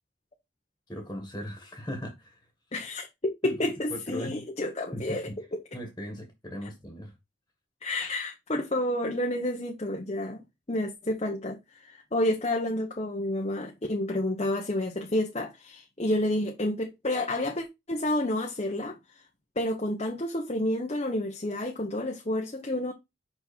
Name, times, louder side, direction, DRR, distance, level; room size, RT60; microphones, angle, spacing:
voice 1, 0.9-2.4 3.4-4.4 4.9-5.4 5.7-7.1, equal, 15° left, 1.8 m, -38 dB
voice 2, 2.7-5.6 7.8-10.4 10.7-19.0 19.6-22.9, left 1 dB, 35° left, 1.0 m, -30 dB
6.0 x 5.6 x 4.4 m
head